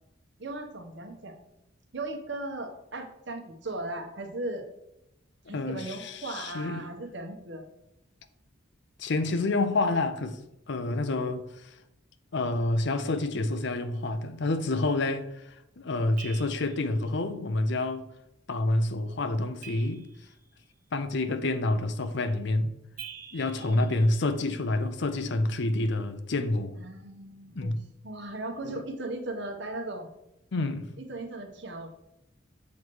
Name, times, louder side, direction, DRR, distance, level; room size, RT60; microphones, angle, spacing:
voice 1, 0.4-1.4 1.9-4.7 5.5-7.6 23.6-24.0 26.8-27.7 28.0-30.1 31.1-31.9, right 2 dB, 60° right, 1.1 m, -37 dB
voice 2, 5.5-6.8 9.0-10.4 10.7-11.7 12.3-15.3 15.8-18.0 18.5-20.1 20.9-22.7 23.3-26.8 27.6-27.8 28.6-28.8 30.5-30.9, left 2 dB, 60° left, 0.5 m, -28 dB
sound 1, 16.2-17.0 19.6-20.6 23.0-24.6, right 9 dB, 45° right, 0.8 m, -47 dB
7.2 x 3.1 x 6.1 m
head